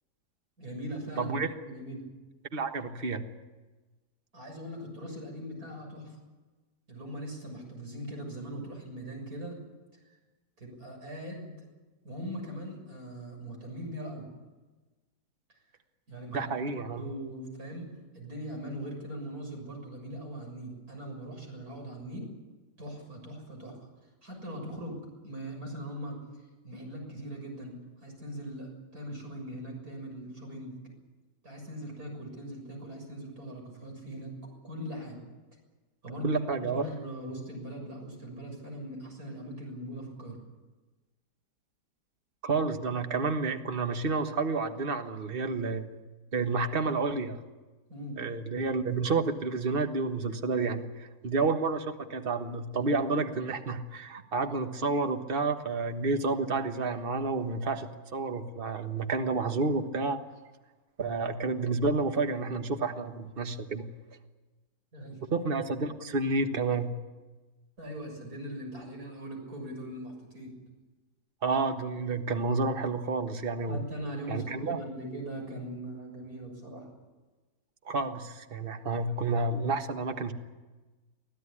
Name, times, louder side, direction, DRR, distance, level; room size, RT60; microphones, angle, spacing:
voice 1, 0.6-1.3 1.6-2.1 4.3-6.2 6.9-9.6 10.6-11.7 12.0-14.3 16.1-17.9 18.1-22.3 22.8-23.8 24.2-26.2 26.6-30.8 31.4-34.3 34.6-35.2 36.0-40.4 47.9-48.2 64.9-65.2 67.8-70.6 73.7-76.9, equal, 60° right, 1 dB, 7.2 m, -40 dB
voice 2, 1.2-1.5 2.5-3.2 16.3-17.0 36.2-36.8 42.4-45.8 46.3-47.4 48.2-60.2 61.0-63.8 65.3-66.9 71.4-73.8 74.3-74.8 77.8-80.3, right 3 dB, 35° right, 7 dB, 1.5 m, -30 dB
25.0 x 15.5 x 10.0 m, 1.2 s
omnidirectional pair, 1.8 m